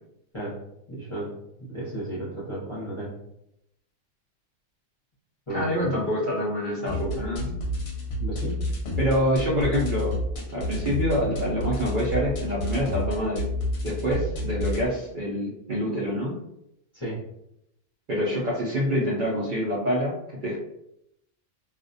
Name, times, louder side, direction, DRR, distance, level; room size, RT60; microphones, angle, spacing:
voice 1, 0.9-1.3 1.6-3.1 5.5-5.9 8.2-8.6 16.9-17.2, right 1 dB, 30° left, -8 dB, 0.6 m, -33 dB
voice 2, 5.5-7.6 9.0-10.2 10.5-13.5 13.8-16.4 18.1-20.6, equal, 55° right, -6 dB, 0.6 m, -26 dB
sound 1, 6.9-14.9, left 1 dB, 65° left, 0.8 m, -30 dB
2.4 x 2.1 x 2.5 m, 0.80 s
omnidirectional pair, 1.3 m